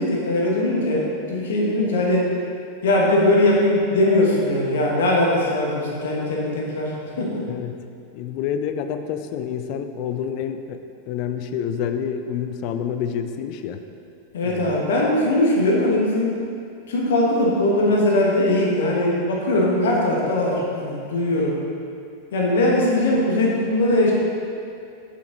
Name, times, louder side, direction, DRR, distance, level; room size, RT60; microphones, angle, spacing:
voice 1, 0.0-2.3 2.8-7.4 14.3-16.4 16.9-21.6 22.3-24.1, left 1 dB, 60° left, -3 dB, 1.6 m, -20 dB
voice 2, 7.5-7.8 8.1-13.8 14.4-14.8, left 8 dB, 45° left, 8 dB, 0.5 m, -28 dB
7.5 x 7.1 x 4.0 m, 2.5 s
figure-of-eight pair, 90°, 0 cm